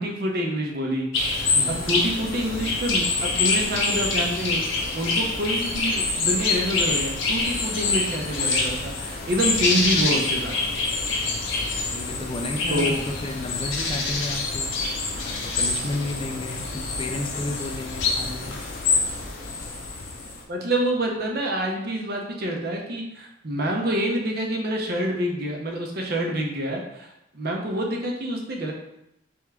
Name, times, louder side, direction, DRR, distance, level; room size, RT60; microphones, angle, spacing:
voice 1, 0.0-10.6 12.7-13.0 20.5-28.7, equal, 55° right, 0 dB, 0.7 m, -27 dB
sound 1, 1.1-20.4, left 3 dB, 75° left, 0.8 m, -26 dB
voice 2, 1.5-1.9 11.8-14.7 15.2-18.6, left 1 dB, 25° left, 4 dB, 0.4 m, -32 dB
3.5 x 3.5 x 3.3 m, 0.84 s
head